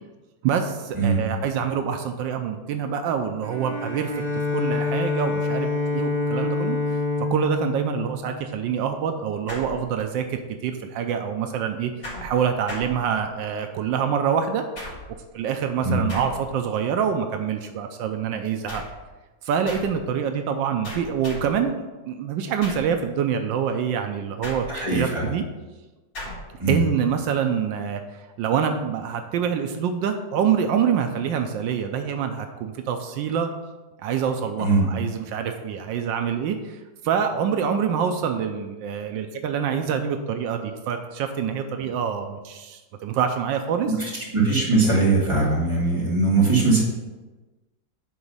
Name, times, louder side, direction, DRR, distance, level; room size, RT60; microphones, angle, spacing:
voice 1, 0.4-4.1 4.5-6.8 7.2-11.9 12.2-14.6 15.3-18.8 19.4-24.7 24.9-25.4 26.7-33.5 34.0-36.8 37.0-43.9, right 7 dB, 85° right, 6 dB, 1.3 m, -26 dB
Bowed string instrument, 3.4-8.9, left 3 dB, 45° right, 0.8 m, -27 dB
sound 1, 9.5-10.3 12.0-13.6 14.8-15.3 16.1-16.7 18.7-19.1 19.7-20.1 20.8-21.7 22.6-23.0 24.4-25.1 26.2-26.6, left 1 dB, 70° left, 3.1 m, -38 dB
voice 2, 24.7-25.3 26.6-26.8 34.6-34.9 43.9-46.8, right 3 dB, 15° right, -6 dB, 2.5 m, -21 dB
9.7 x 4.0 x 5.6 m, 1.2 s
omnidirectional pair, 2.0 m